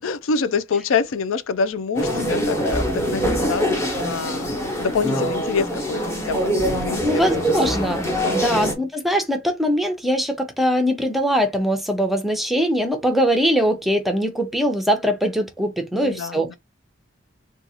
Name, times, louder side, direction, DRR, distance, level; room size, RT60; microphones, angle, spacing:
voice 1, 0.0-4.5 4.8-7.2 8.2-8.6 15.9-16.6, left 5 dB, 80° left, 0.4 m, -26 dB
sound 1, 1.9-8.7, equal, 15° left, 1.0 m, -24 dB
voice 2, 7.0-8.0 8.3-16.6, equal, ahead, 0.6 m, -21 dB
3.9 x 2.3 x 2.8 m
head